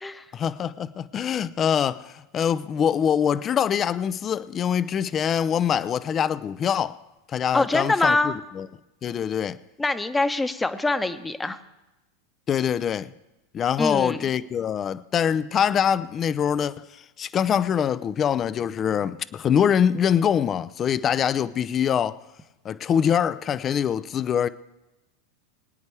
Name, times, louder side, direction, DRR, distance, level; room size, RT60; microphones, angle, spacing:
voice 1, 0.3-7.0 7.3-8.7 9.0-9.6 12.5-13.1 13.5-16.9 17.2-22.2 22.6-24.5, left 8 dB, 30° left, 0.5 m, -24 dB
voice 2, 7.5-8.4 9.8-11.6 13.8-14.2, left 2 dB, 10° left, 1.0 m, -24 dB
23.0 x 9.5 x 3.4 m
hypercardioid pair, 100°, 0 cm